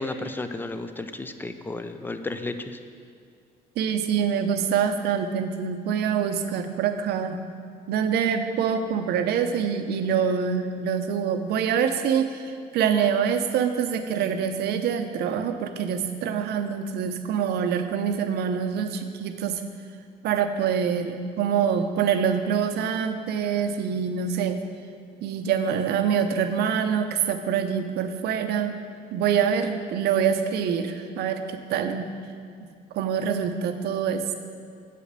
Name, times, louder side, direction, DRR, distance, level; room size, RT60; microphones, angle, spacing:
voice 1, 0.0-2.8, left 2 dB, 10° left, 9 dB, 0.5 m, -33 dB
voice 2, 3.8-7.5 7.9-19.6 20.2-24.6 25.2-28.7 29.1-31.4 31.7-32.0 32.9-34.3, right 7 dB, 75° right, 7 dB, 0.7 m, -25 dB
8.3 x 5.1 x 6.6 m, 2.2 s
cardioid pair, 110°, 17 cm